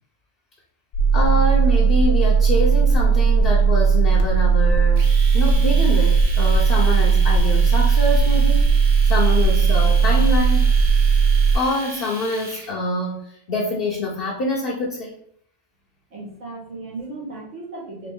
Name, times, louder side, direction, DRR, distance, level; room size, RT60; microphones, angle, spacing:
sound 1, 0.9-11.5, right 5 dB, 90° left, 1.1 m, -17 dB
voice 1, 1.1-10.7 11.5-13.2 13.5-15.2, left 1 dB, 55° left, -3 dB, 0.9 m, -25 dB
Domestic sounds home sounds, 5.0-12.7, right 3 dB, 35° right, 0.7 m, -36 dB
voice 2, 16.1-18.1, right 3 dB, 80° right, -4 dB, 1.8 m, -35 dB
3.8 x 3.3 x 3.6 m, 0.64 s
omnidirectional pair, 1.2 m